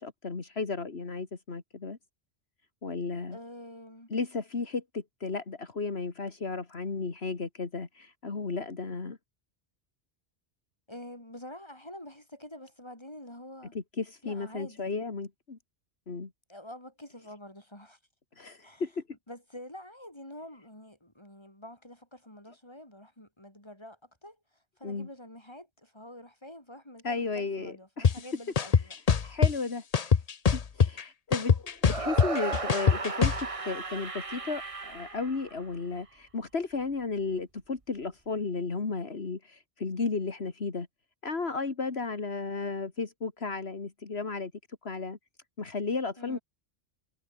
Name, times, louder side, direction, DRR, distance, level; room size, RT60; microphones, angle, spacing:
voice 1, 0.0-2.0 2.8-3.4 4.1-9.2 13.7-15.6 16.1-16.3 18.4-19.0 24.8-25.1 27.0-28.1 29.2-29.8 30.5-33.3 33.6-40.9 41.2-44.5 44.8-45.2 45.6-46.4, left 4 dB, 70° left, 2.4 m, -34 dB
voice 2, 3.3-4.1 10.9-13.7 14.2-15.0 16.5-18.0 18.6-18.8 19.3-24.4 24.8-29.0 46.2-46.4, left 1 dB, 25° left, 6.7 m, -47 dB
sound 1, 28.0-28.1 28.6-29.5 29.9-31.0 31.3-33.4, left 6 dB, 40° left, 0.8 m, -22 dB
sound 2, 31.8-36.0, right 4 dB, 30° right, 1.3 m, -35 dB
omnidirectional pair, 1.1 m